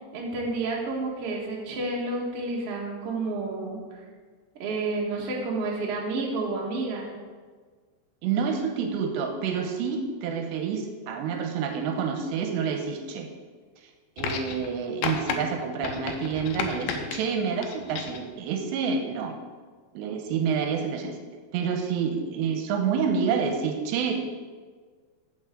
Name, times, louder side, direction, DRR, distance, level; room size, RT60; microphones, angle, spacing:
voice 1, 0.1-4.0 4.6-7.1, right 3 dB, 55° right, -3 dB, 1.7 m, -30 dB
voice 2, 8.2-13.3 14.2-19.4 20.0-21.2 21.5-24.4, right 6 dB, 85° right, 4 dB, 2.9 m, -28 dB
sound 1, 14.2-14.7 15.0-15.4 15.8-17.2 17.6-18.3 19.3-19.4, left 6 dB, 80° left, 2.1 m, -32 dB
14.5 x 5.9 x 3.8 m, 1.5 s
omnidirectional pair, 5.1 m